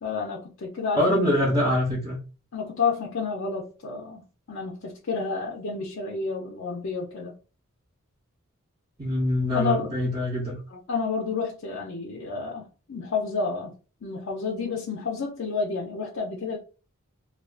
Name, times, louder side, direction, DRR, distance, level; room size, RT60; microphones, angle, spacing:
voice 1, 0.0-1.3 2.5-4.2 4.5-7.3 9.5-10.0 10.7-13.7 14.0-16.6, left 4 dB, 65° left, 0.5 m, -30 dB
voice 2, 1.0-2.2 9.0-10.5, left 1 dB, 20° right, 0.7 m, -24 dB
2.4 x 2.3 x 2.3 m
head